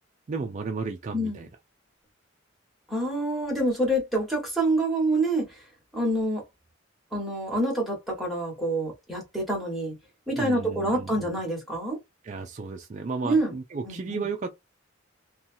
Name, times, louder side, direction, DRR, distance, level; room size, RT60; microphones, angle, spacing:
voice 1, 0.3-1.5 10.3-11.3 12.2-14.5, right 4 dB, 35° right, 0.3 m, -33 dB
voice 2, 1.1-1.5 2.9-5.5 5.9-6.4 7.1-9.9 10.3-12.0 13.2-13.5 13.8-14.2, right 1 dB, ahead, 1.3 m, -27 dB
2.7 x 2.3 x 2.6 m
head